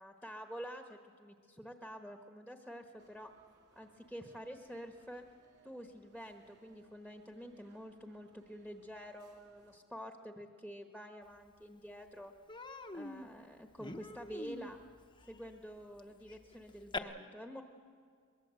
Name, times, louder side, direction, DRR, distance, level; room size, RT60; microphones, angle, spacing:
voice 1, 0.0-3.3 3.7-5.2 5.6-12.3 12.9-14.8 15.3-17.6, equal, 5° right, 4 dB, 1.2 m, -48 dB
sound 1, 3.0-9.8, right 3 dB, 60° right, 3.1 m, -69 dB
Human voice, 11.5-11.6 11.9-12.1 12.5-17.0, left 2 dB, 20° left, 0.9 m, -46 dB
24.0 x 21.5 x 7.8 m, 2.1 s
head